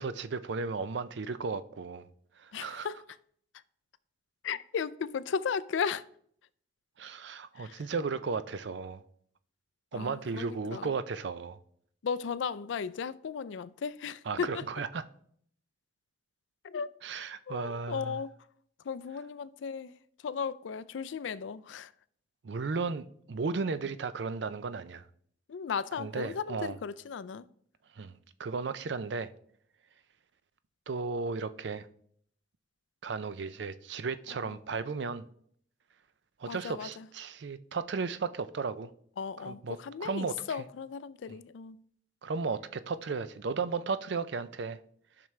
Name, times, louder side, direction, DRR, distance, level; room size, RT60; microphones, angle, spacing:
voice 1, 0.0-2.1 2.4-2.9 7.0-9.0 9.9-11.6 14.3-15.0 17.0-18.2 22.4-25.0 26.0-26.8 28.0-29.3 30.9-31.9 33.0-35.2 36.4-38.9 39.5-40.4 41.3-41.4 42.2-44.8, right 4 dB, 70° right, 0.5 m, -35 dB
voice 2, 2.5-3.0 4.4-6.0 7.6-7.8 9.9-10.9 12.0-14.6 16.6-16.9 17.5-18.3 18.8-19.9 20.2-21.9 25.5-27.5 34.3-34.5 36.5-37.1 39.2-41.8, left 6 dB, 80° left, 0.4 m, -36 dB
12.5 x 6.0 x 3.2 m
head